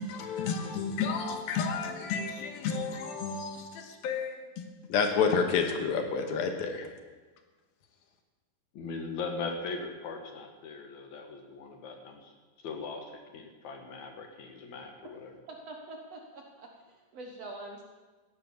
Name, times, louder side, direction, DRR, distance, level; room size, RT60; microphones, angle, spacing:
voice 1, 0.0-4.6 4.9-6.9, left 5 dB, 85° left, 4 dB, 3.2 m, -30 dB
voice 2, 8.7-12.3 12.6-13.1 13.3-15.3, left 4 dB, 60° left, 3 dB, 2.6 m, -39 dB
voice 3, 15.4-17.8, right 2 dB, 60° right, 1 dB, 1.8 m, -45 dB
15.0 x 10.0 x 7.0 m, 1.3 s
omnidirectional pair, 4.2 m